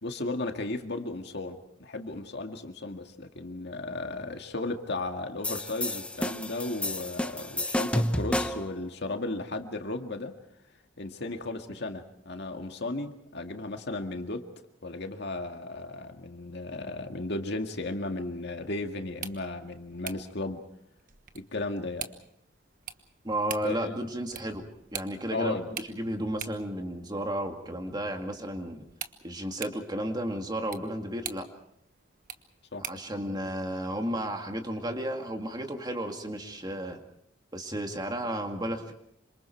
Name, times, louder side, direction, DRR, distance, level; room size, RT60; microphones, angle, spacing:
voice 1, 0.0-10.4 11.0-14.5 14.8-20.6 21.3-22.1 23.6-23.9 25.3-25.7 32.7-32.9, left 2 dB, 60° left, 5 dB, 2.0 m, -35 dB
sound 1, 5.4-8.7, left 1 dB, 5° left, 0.8 m, -30 dB
sound 2, 19.0-33.2, right 9 dB, 45° right, 1.2 m, -45 dB
voice 2, 23.2-24.7 24.9-25.5 25.9-28.9 29.2-31.4 32.8-37.0 37.5-38.9, right 1 dB, 20° right, 4 dB, 2.2 m, -33 dB
27.5 x 26.0 x 4.6 m, 0.73 s
head